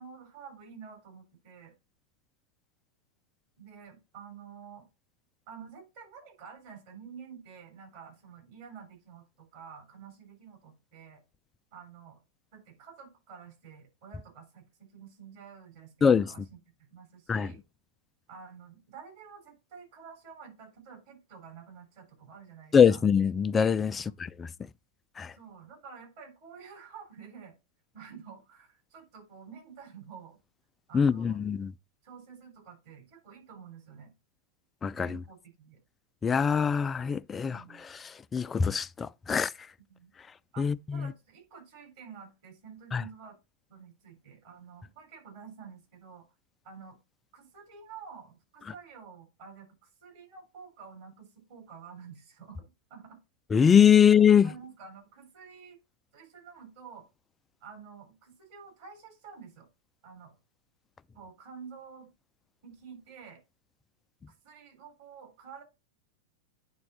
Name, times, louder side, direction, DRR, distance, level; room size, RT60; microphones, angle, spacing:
voice 1, 0.0-1.7 3.6-4.9 5.5-11.2 11.7-12.2 12.5-17.6 18.3-23.0 23.9-24.2 25.3-27.5 27.9-30.4 30.9-31.4 32.0-34.1 35.0-35.8 37.5-37.8 39.9-40.1 40.5-43.4 43.7-46.3 46.6-47.0 47.3-53.2 54.0-54.1 54.4-55.8 56.1-57.1 57.6-59.7 60.0-60.3 61.1-62.1 62.6-63.4 64.4-65.6, right 6 dB, 50° right, 3.8 m, -49 dB
voice 2, 22.7-24.5 25.2-25.3 30.9-31.7 34.8-35.1 36.2-37.6 38.3-39.5 40.6-41.1 42.9-43.0 53.5-54.5, left 7 dB, 20° left, 0.3 m, -23 dB
8.8 x 3.8 x 4.1 m
figure-of-eight pair, 90°, 0 cm